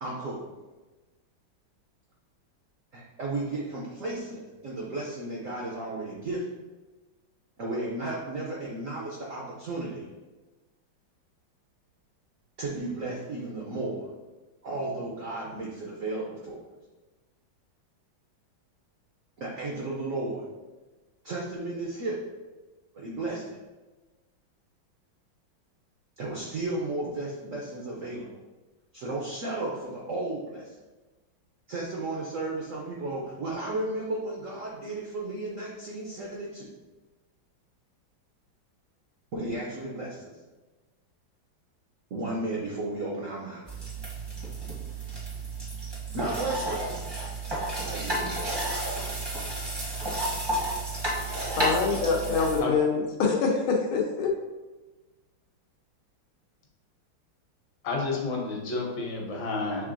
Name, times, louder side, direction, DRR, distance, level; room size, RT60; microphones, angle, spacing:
voice 1, 0.0-0.4 2.9-6.4 7.6-10.0 12.6-14.1 14.6-16.6 19.4-20.4 21.2-22.2 22.9-23.4 26.2-28.3 28.9-30.7 31.7-36.7 39.3-40.3 42.1-43.7 46.1-46.8 47.9-48.5, right 2 dB, 70° right, -3 dB, 0.7 m, -34 dB
sound 1, 43.7-52.6, right 2 dB, 30° right, 0.4 m, -32 dB
voice 2, 51.6-54.3, left 4 dB, 90° left, 0 dB, 1.6 m, -25 dB
voice 3, 57.8-59.9, left 3 dB, 70° left, -1 dB, 1.6 m, -30 dB
6.4 x 3.3 x 2.5 m, 1.2 s
omnidirectional pair, 2.2 m